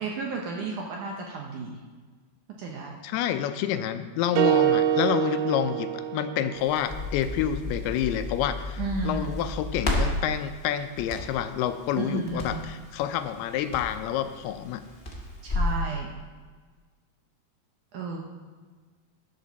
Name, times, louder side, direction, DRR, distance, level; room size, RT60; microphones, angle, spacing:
voice 1, 0.0-1.8 2.6-3.0 8.8-9.3 12.0-12.6 15.4-16.1 17.9-18.2, right 3 dB, 70° right, 0 dB, 2.0 m, -32 dB
voice 2, 3.0-14.8, left 10 dB, 80° left, 9 dB, 2.6 m, -28 dB
sound 1, 4.4-6.7, right 10 dB, 85° right, 2.7 m, -24 dB
Crackle, 6.5-15.8, left 1 dB, 60° left, 0.6 m, -33 dB
13.0 x 10.0 x 4.1 m, 1.5 s
omnidirectional pair, 4.6 m